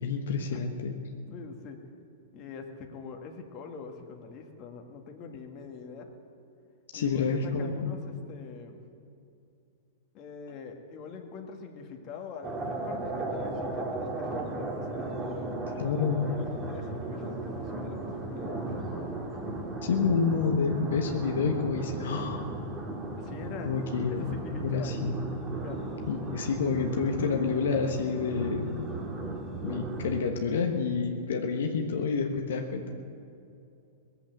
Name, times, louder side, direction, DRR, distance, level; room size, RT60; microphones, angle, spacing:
voice 1, 0.0-0.9 6.9-8.0 15.8-16.3 19.8-22.4 23.6-25.2 26.1-28.9 29.6-32.9, left 5 dB, 75° left, 3 dB, 1.2 m, -29 dB
voice 2, 1.3-1.8 2.3-6.2 6.9-8.0 8.3-8.8 10.1-19.2 23.2-23.7 24.1-25.8, left 5 dB, 40° left, 3 dB, 1.8 m, -44 dB
sound 1, 12.4-30.3, right 2 dB, 20° right, 2.2 m, -36 dB
18.5 x 8.2 x 7.8 m, 2.6 s
hypercardioid pair, 120°, 0 cm